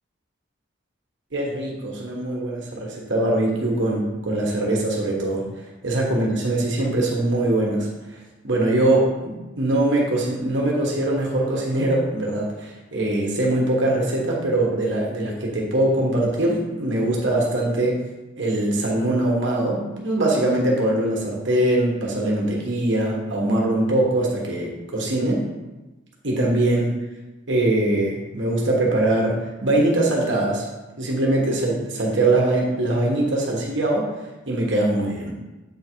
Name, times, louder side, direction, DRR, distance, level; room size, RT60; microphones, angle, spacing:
voice 1, 1.3-5.5 5.8-7.9 8.4-18.0 18.4-25.4 26.2-26.9 27.5-30.6 31.0-34.0 34.5-35.3, right 1 dB, 65° right, -2 dB, 1.4 m, -22 dB
7.6 x 3.7 x 4.6 m, 1.1 s
head